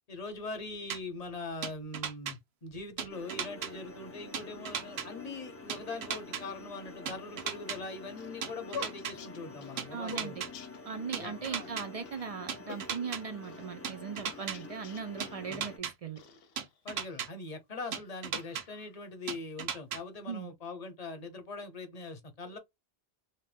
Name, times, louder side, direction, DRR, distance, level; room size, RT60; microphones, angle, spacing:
voice 1, 0.1-10.4 11.2-11.7 15.5-15.7 16.8-22.6, left 3 dB, 40° left, 0.8 m, -42 dB
sound 1, 0.9-1.0 1.6-2.3 3.0-3.7 4.3-5.1 5.7-6.4 7.1-7.8 8.4-9.1 9.8-10.5 11.1-11.8 12.5-13.2 13.8-14.6 15.2-15.9 16.6-17.3 17.9-18.6 19.3-20.0, right 7 dB, 85° right, 0.9 m, -36 dB
sound 2, 3.1-15.8, left 3 dB, 25° left, 0.3 m, -48 dB
sound 3, 7.8-11.3 11.6-11.7 12.1-12.3 12.7-13.7 14.2-15.4 16.2-17.3 17.9-19.1, left 6 dB, 75° left, 0.8 m, -47 dB
voice 2, 9.9-10.4 10.9-16.2 20.3-20.5, right 6 dB, 55° right, 0.4 m, -39 dB
2.7 x 2.0 x 3.2 m
omnidirectional pair, 1.0 m